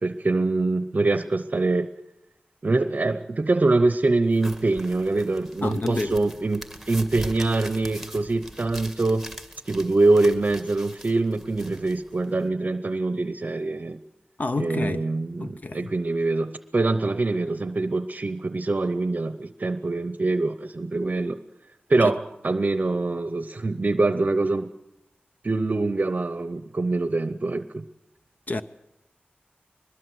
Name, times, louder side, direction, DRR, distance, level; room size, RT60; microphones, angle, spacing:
voice 1, 0.0-1.9 2.6-9.2 9.7-14.0 14.6-21.4 21.9-24.7 25.4-27.8, right 2 dB, 45° right, 0.8 m, -24 dB
sound 1, 4.3-12.5, right 1 dB, ahead, 2.3 m, -42 dB
voice 2, 5.6-6.2 14.4-15.0 15.4-15.9 22.0-22.1 28.5-28.6, left 3 dB, 50° left, 0.7 m, -29 dB
22.5 x 21.0 x 7.8 m
wide cardioid pair, 90°, 4 cm